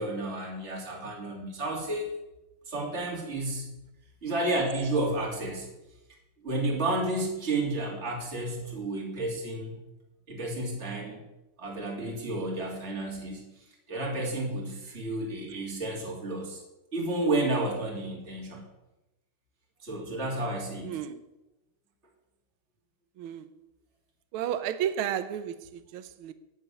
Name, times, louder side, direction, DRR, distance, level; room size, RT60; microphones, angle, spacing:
voice 1, 0.0-2.1 2.7-3.7 4.2-5.7 6.4-9.7 10.3-11.2 11.6-13.5 13.9-16.6 16.9-18.6 19.8-21.0, right 2 dB, 30° right, 2.8 m, -31 dB
voice 2, 20.9-21.2 23.2-23.5 24.3-25.6 25.9-26.3, right 10 dB, 75° right, 1.6 m, -32 dB
9.6 x 7.7 x 9.2 m
omnidirectional pair, 2.4 m